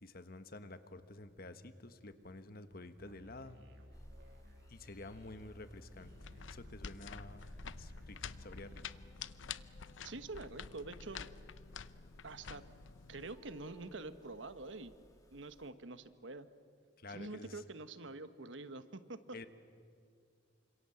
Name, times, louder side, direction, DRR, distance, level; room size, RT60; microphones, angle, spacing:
voice 1, 0.0-3.6 4.7-7.5 7.8-8.8 17.0-17.6 19.3-19.5, left 2 dB, 50° left, 10 dB, 1.4 m, -50 dB
Musical instrument, 3.0-8.8, left 1 dB, 60° right, 2.6 m, -58 dB
sound 1, 3.9-15.7, equal, 20° left, 2.0 m, -59 dB
sound 2, 6.0-13.3, left 7 dB, 90° left, 0.7 m, -49 dB
voice 2, 10.0-11.3 12.2-12.6 13.1-14.9 15.3-16.5 17.1-19.2, right 3 dB, 85° right, 11 dB, 1.2 m, -46 dB
28.5 x 26.0 x 7.9 m, 2.3 s
head